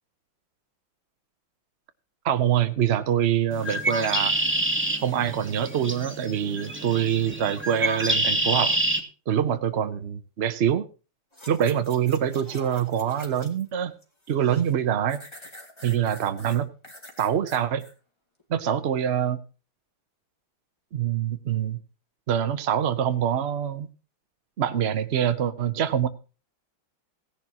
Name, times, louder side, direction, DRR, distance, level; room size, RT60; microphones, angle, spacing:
voice 1, 2.2-4.3 5.0-8.7 9.3-10.8 11.5-13.9 14.3-15.2 15.8-16.7 17.2-17.8 18.5-19.4 20.9-21.8 22.3-23.9 24.6-26.1, right 9 dB, 65° right, 9 dB, 0.6 m, -25 dB
Bird, 3.5-9.0, right 1 dB, 5° right, 1.5 m, -27 dB
sound 1, 11.3-13.7 14.0-14.7 15.1-17.9 18.4-18.5, left 1 dB, 15° left, 2.2 m, -46 dB
17.0 x 10.5 x 2.9 m, 0.34 s
omnidirectional pair, 2.2 m